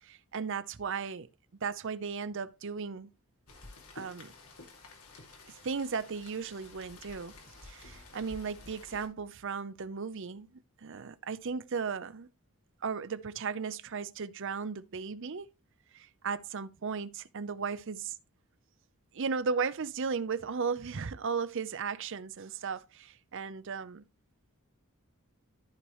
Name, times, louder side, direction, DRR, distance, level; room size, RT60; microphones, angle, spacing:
voice 1, 0.0-1.3 1.6-3.1 3.9-4.3 5.5-7.3 7.6-10.5 10.8-12.3 12.8-15.5 15.9-18.1 19.1-24.0, right 5 dB, 60° right, 0.6 m, -36 dB
Rain, 3.5-9.1, left 3 dB, 80° left, 2.3 m, -51 dB
14.0 x 4.7 x 3.1 m
head